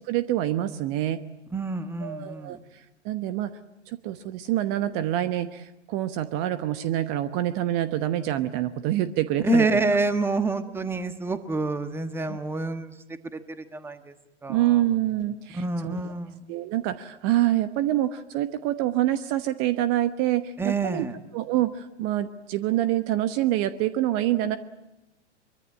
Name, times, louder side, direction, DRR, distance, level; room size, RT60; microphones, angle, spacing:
voice 1, 0.1-1.2 2.0-2.6 3.0-3.5 3.9-9.7 12.3-12.4 14.5-16.0 16.5-21.0 21.3-24.6, right 13 dB, 35° right, 12 dB, 1.1 m, -26 dB
voice 2, 1.5-2.6 9.4-12.9 13.3-14.1 14.4-14.8 15.5-16.5 20.6-21.1, right 3 dB, 5° right, 10 dB, 1.3 m, -27 dB
23.5 x 23.5 x 8.6 m, 0.94 s
figure-of-eight pair, 105°, 36 cm